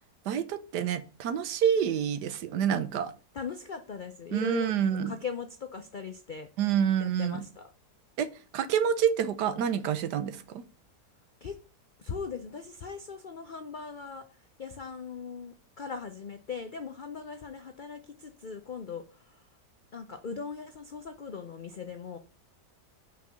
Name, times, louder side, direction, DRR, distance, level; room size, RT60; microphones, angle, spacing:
voice 1, 0.3-3.1 4.3-5.1 6.6-7.4 8.2-8.3 8.5-10.6, right 8 dB, 80° right, 1.3 m, -28 dB
voice 2, 3.3-4.7 5.1-6.5 7.0-7.7 11.4-11.6 12.0-14.2 14.6-19.0 19.9-22.2, left 5 dB, 70° left, 0.4 m, -39 dB
5.7 x 4.7 x 6.2 m
omnidirectional pair, 1.7 m